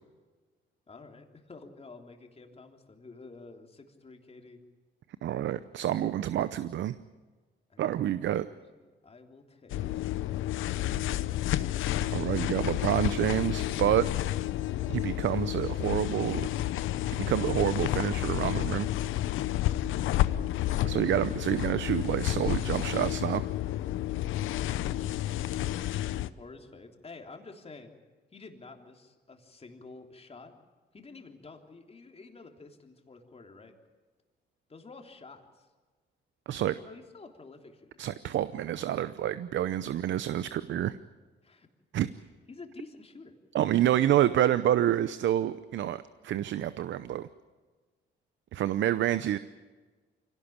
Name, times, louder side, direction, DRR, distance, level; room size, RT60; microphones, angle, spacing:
voice 1, 0.9-4.6 7.7-8.0 8.3-10.2 26.4-27.9 28.3-30.5 30.9-33.7 34.7-35.7 36.8-38.0 39.8-39.9 41.4-41.7 42.5-43.3, left 3 dB, 30° left, 4 dB, 3.3 m, -50 dB
voice 2, 5.2-7.0 7.8-8.5 12.1-14.1 14.9-16.5 17.1-18.9 20.8-23.4 36.5-36.8 38.0-41.0 41.9-42.1 43.5-47.3 48.5-49.4, right 12 dB, 70° right, 14 dB, 0.8 m, -28 dB
sound 1, 9.7-26.3, left 14 dB, 85° left, 0.8 m, -30 dB
24.5 x 17.5 x 8.7 m, 1.3 s
cardioid pair, 90°, 20 cm